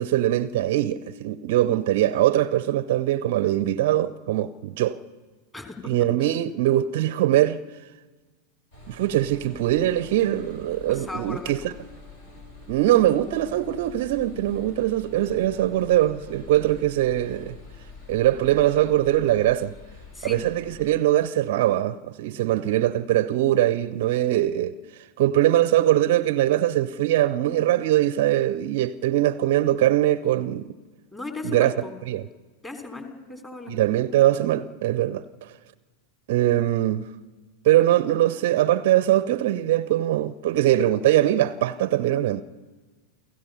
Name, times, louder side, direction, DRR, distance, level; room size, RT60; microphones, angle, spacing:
voice 1, 0.0-5.0 5.8-7.6 8.9-11.7 12.7-17.6 18.1-19.7 20.2-24.8 25.2-30.7 31.4-31.7 32.1-32.2 33.7-35.5 36.3-37.0 37.6-42.4, right 13 dB, 50° right, 0.6 m, -22 dB
voice 2, 5.5-5.9 6.2-6.3 10.9-11.5 20.1-20.4 31.1-31.9 32.6-33.8, left 3 dB, 15° left, 3.5 m, -36 dB
sound 1, 8.7-20.9, left 3 dB, 55° left, 6.5 m, -45 dB
29.5 x 16.0 x 5.5 m
figure-of-eight pair, 90°, 0 cm